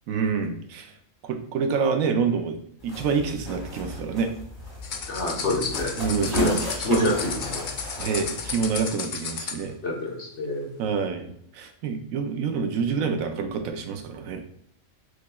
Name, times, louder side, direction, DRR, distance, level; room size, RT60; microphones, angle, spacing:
voice 1, 0.1-0.9 1.2-2.6 2.8-4.3 6.0-7.2 7.9-9.8 10.8-14.4, right 5 dB, 85° right, 6 dB, 1.0 m, -27 dB
sound 1, 2.8-8.8, left 2 dB, 20° left, 1.9 m, -37 dB
sound 2, 4.8-9.7, left 6 dB, 75° left, 0.4 m, -34 dB
voice 2, 5.1-5.9 6.2-7.7 9.8-10.7, left 3 dB, 60° left, -1 dB, 1.3 m, -27 dB
6.5 x 3.0 x 2.3 m, 0.69 s
omnidirectional pair, 1.4 m